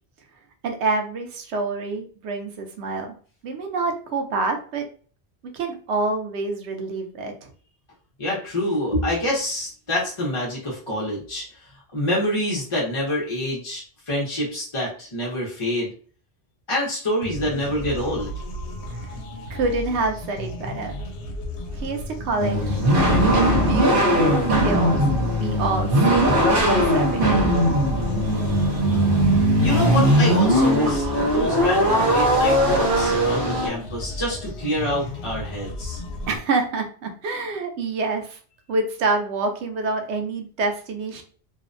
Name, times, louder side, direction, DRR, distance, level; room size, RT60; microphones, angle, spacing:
voice 1, 0.6-3.1 3.4-4.9 5.5-7.5 18.9-19.2 19.5-20.9 21.7-22.8 23.3-23.4 23.7-25.0 25.3-27.5 36.3-38.4 38.7-41.2, right 3 dB, 85° right, 5 dB, 0.9 m, -27 dB
voice 2, 8.2-11.4 11.9-15.9 16.7-18.3 28.4-28.9 29.6-31.1 31.3-36.0, left 1 dB, 35° left, -5 dB, 0.6 m, -26 dB
sound 1, 17.2-36.4, left 1 dB, 80° left, 0.8 m, -34 dB
sound 2, 22.4-33.7, equal, 55° right, 0.9 m, -19 dB
2.6 x 2.1 x 2.5 m, 0.42 s
omnidirectional pair, 1.1 m